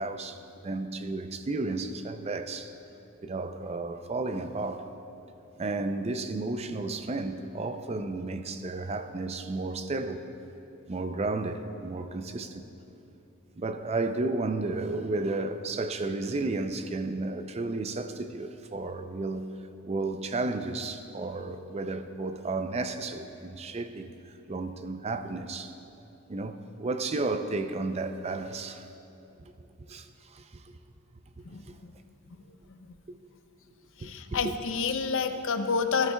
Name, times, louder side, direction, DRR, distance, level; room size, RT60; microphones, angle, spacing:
voice 1, 0.0-2.7 3.2-5.0 5.6-10.2 10.9-12.7 13.6-19.6 19.8-25.7 26.3-28.9 29.9-30.7 31.4-31.8 33.1-33.2 34.0-34.5, right 3 dB, 30° right, 0.4 m, -33 dB
voice 2, 31.4-31.9 32.7-32.9 34.0-36.1, left 5 dB, 60° left, 0.5 m, -29 dB
13.5 x 13.0 x 2.3 m
head